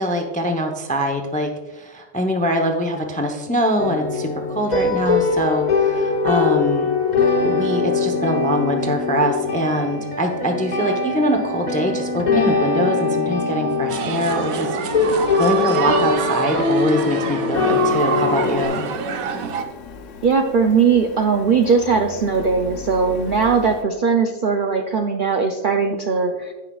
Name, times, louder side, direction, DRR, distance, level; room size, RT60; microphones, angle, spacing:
voice 1, 0.0-6.9 7.4-15.1 15.4-18.9, equal, 10° left, 2 dB, 0.4 m, -23 dB
sound 1, 3.8-18.7, left 4 dB, 35° left, 0.8 m, -22 dB
sound 2, 13.9-19.6, right 7 dB, 85° right, 1.1 m, -26 dB
Printer, 17.5-23.8, left 6 dB, 65° left, 1.0 m, -38 dB
voice 2, 20.2-26.5, right 5 dB, 60° right, 3 dB, 0.5 m, -19 dB
16.0 x 5.7 x 2.3 m, 1.2 s
omnidirectional pair, 1.5 m